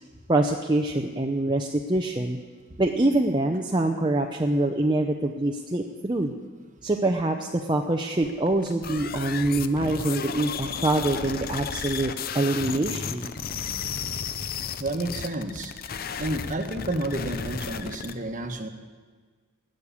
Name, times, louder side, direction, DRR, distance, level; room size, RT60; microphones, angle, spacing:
voice 1, 0.3-2.4 2.8-6.3 6.8-13.3, right 2 dB, 20° right, 3 dB, 0.6 m, -25 dB
sound 1, 8.2-18.1, left 6 dB, 45° left, 0.6 m, -33 dB
voice 2, 14.8-15.7 16.2-18.7, right 1 dB, 35° right, 6 dB, 1.2 m, -30 dB
18.5 x 6.5 x 8.4 m, 1.5 s
head